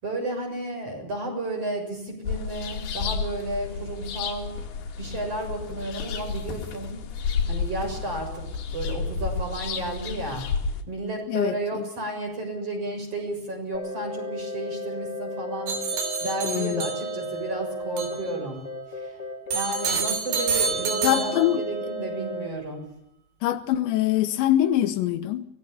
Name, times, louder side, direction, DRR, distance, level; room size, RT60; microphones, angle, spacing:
voice 1, 0.0-4.6 5.0-7.0 7.5-8.4 8.7-10.4 10.9-15.8 16.2-18.6 18.9-19.2 19.5-22.9, right 2 dB, 35° right, 7.6 m, -32 dB
sound 1, 2.3-10.8, left 5 dB, 65° left, 4.0 m, -31 dB
voice 2, 11.3-11.8 16.4-16.8 21.0-21.6 23.4-25.5, left 12 dB, 80° left, 3.3 m, -24 dB
sound 2, 13.7-22.5, equal, 10° left, 2.5 m, -34 dB
sound 3, 15.7-17.4 18.0-18.2 19.5-21.8, right 5 dB, 80° right, 5.6 m, -28 dB
24.5 x 19.0 x 6.9 m
omnidirectional pair, 5.1 m